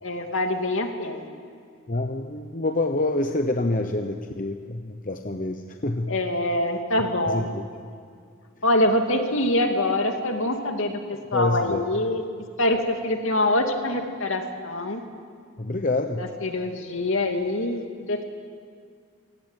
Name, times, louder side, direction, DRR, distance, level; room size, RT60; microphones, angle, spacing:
voice 1, 0.0-1.3 6.1-7.5 8.6-12.2 12.6-15.0 16.2-18.2, left 1 dB, 70° left, 4 dB, 2.5 m, -25 dB
voice 2, 1.9-6.1 7.3-7.6 11.3-11.8 15.6-16.2, left 2 dB, 35° left, 5 dB, 1.0 m, -26 dB
27.5 x 17.5 x 9.1 m, 2.2 s
head